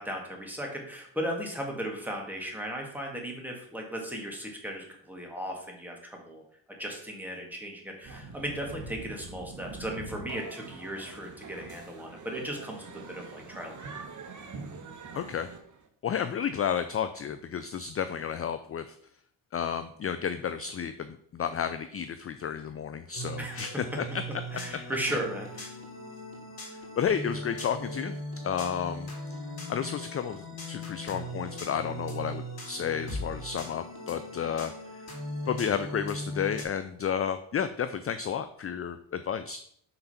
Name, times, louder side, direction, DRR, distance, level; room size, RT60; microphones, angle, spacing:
voice 1, 0.0-6.4 6.8-14.0 23.4-23.7 24.5-25.7, equal, 5° right, 0 dB, 2.0 m, -36 dB
sound 1, 8.0-15.9, right 4 dB, 40° right, 1.2 m, -44 dB
voice 2, 15.1-15.5 16.0-19.0 19.5-24.2 27.0-28.2 28.4-29.1 29.7-34.7 35.5-39.6, left 8 dB, 35° left, 10 dB, 0.4 m, -32 dB
sound 2, 23.1-36.6, equal, 50° left, 2.6 m, -39 dB
5.9 x 3.9 x 5.7 m, 0.64 s
cardioid pair, 90°, 46 cm